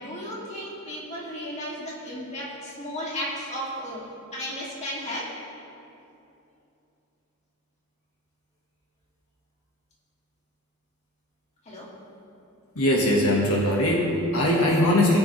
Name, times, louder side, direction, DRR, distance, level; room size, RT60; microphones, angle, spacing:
voice 1, 0.0-4.0 4.3-5.3 11.6-11.9, equal, 30° left, -6 dB, 2.3 m, -34 dB
voice 2, 12.7-15.2, left 1 dB, 75° left, -2 dB, 1.5 m, -21 dB
20.0 x 7.0 x 3.2 m, 2.7 s
head